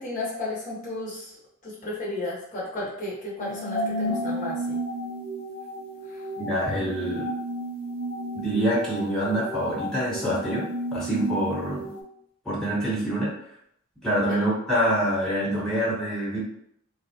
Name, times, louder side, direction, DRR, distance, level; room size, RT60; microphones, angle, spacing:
voice 1, 0.0-1.3 1.6-4.8 6.1-6.2 14.3-14.5, left 2 dB, 35° left, -6 dB, 0.9 m, -33 dB
sound 1, 3.4-12.0, equal, 75° right, 0.9 m, -32 dB
voice 2, 6.4-7.3 8.3-11.9 12.4-13.3 14.0-16.4, right 1 dB, ahead, -8 dB, 1.2 m, -26 dB
4.0 x 2.1 x 2.8 m, 0.70 s
head